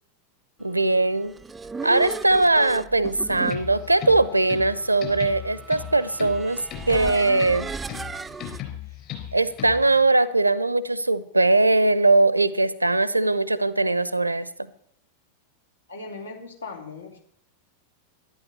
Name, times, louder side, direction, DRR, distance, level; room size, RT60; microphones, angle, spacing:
voice 1, 0.6-1.3 1.8-7.7 9.3-14.7, right 2 dB, 85° right, 17 dB, 0.8 m, -21 dB
sound 1, 1.1-8.6, right 4 dB, 15° right, 0.5 m, -36 dB
sound 2, 3.4-10.0, left 11 dB, 40° left, 4.0 m, -37 dB
voice 2, 15.9-17.2, left 3 dB, 75° left, 2 dB, 3.4 m, -38 dB
12.0 x 11.5 x 8.1 m, 0.65 s
figure-of-eight pair, 90°, 0 cm